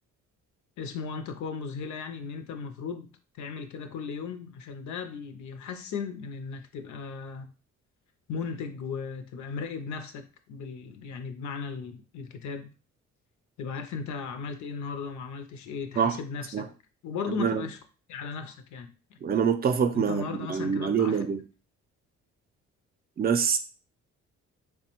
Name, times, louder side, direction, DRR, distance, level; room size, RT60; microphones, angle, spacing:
voice 1, 0.8-7.5 8.3-12.7 13.6-16.7 17.0-17.8 18.1-19.2 19.9-21.2, left 5 dB, 70° left, 0.5 m, -36 dB
voice 2, 19.2-20.2 20.5-21.4 23.2-23.6, right 7 dB, 30° right, 0.4 m, -25 dB
3.3 x 2.1 x 2.9 m
cardioid pair, 90°, 30 cm